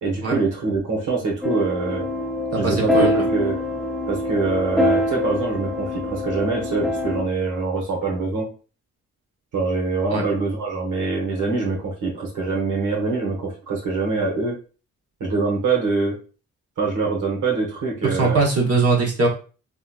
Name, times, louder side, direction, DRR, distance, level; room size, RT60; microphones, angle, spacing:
voice 1, 0.0-2.1 2.6-3.6 4.1-8.5 9.5-14.5 15.2-16.2 16.8-18.4, right 4 dB, 70° right, -2 dB, 1.1 m, -24 dB
sound 1, 1.4-7.2, left 1 dB, ahead, 0.5 m, -24 dB
voice 2, 2.5-3.2 10.1-10.2 18.1-19.3, right 3 dB, 45° right, -1 dB, 1.1 m, -21 dB
3.8 x 2.2 x 2.3 m, 0.37 s
cardioid pair, 55°, 32 cm